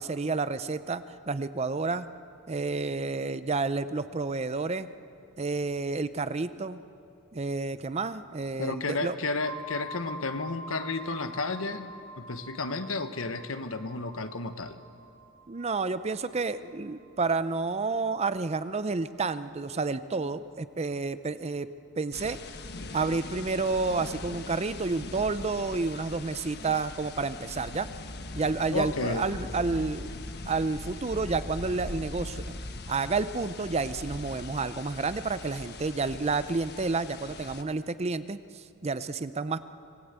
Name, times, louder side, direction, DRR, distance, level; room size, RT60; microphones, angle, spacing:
voice 1, 0.0-2.1 2.5-4.9 5.4-6.8 7.3-9.2 15.5-21.7 22.0-22.4 22.9-27.9 28.3-30.1 30.5-32.5 32.9-39.6, right 3 dB, 30° right, 13 dB, 0.5 m, -30 dB
voice 2, 8.6-14.8 28.7-29.2, left 3 dB, 65° left, 9 dB, 1.2 m, -32 dB
sound 1, 9.4-19.1, equal, 75° right, 2.3 m, -47 dB
sound 2, 22.1-37.6, left 2 dB, 50° left, 1.2 m, -41 dB
26.0 x 18.5 x 8.2 m, 2.5 s
head